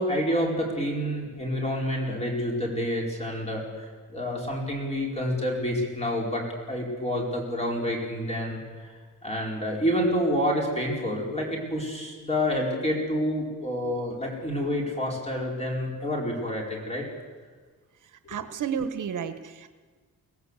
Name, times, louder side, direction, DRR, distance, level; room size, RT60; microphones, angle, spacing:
voice 1, 0.0-8.9 9.2-17.1, equal, 20° left, -1 dB, 4.7 m, -28 dB
voice 2, 18.0-19.7, right 7 dB, 70° right, 9 dB, 1.2 m, -32 dB
24.0 x 17.5 x 8.2 m, 1.4 s
wide cardioid pair, 165°, 31 cm